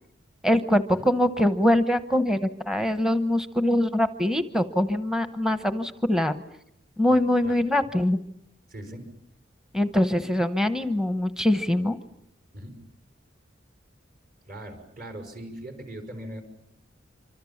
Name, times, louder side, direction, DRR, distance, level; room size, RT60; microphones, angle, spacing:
voice 1, 0.4-6.4 7.0-8.2 9.7-12.0, left 1 dB, 5° right, 10 dB, 0.9 m, -23 dB
voice 2, 7.1-7.6 8.7-9.1 12.5-12.8 14.5-16.4, right 1 dB, 50° right, 6 dB, 5.5 m, -40 dB
26.0 x 25.5 x 7.2 m, 0.74 s
head